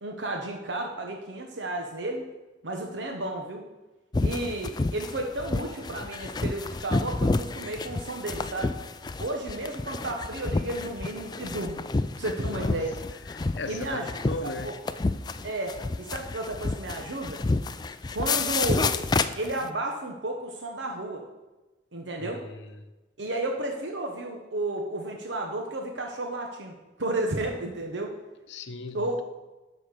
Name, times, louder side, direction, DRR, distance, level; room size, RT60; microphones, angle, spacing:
voice 1, 0.0-2.2 2.6-3.6 4.2-8.8 9.2-11.8 12.2-12.9 13.7-14.1 14.4-14.7 15.4-17.4 18.1-18.9 19.4-21.2 21.9-22.4 23.2-28.1 28.9-29.2, right 2 dB, 80° right, 1.0 m, -32 dB
sound 1, 4.1-19.7, left 3 dB, 20° left, 0.3 m, -29 dB
voice 2, 12.5-12.9 13.3-14.7 22.2-22.9 28.5-29.2, left 3 dB, 80° left, 0.8 m, -37 dB
12.0 x 4.3 x 6.6 m
head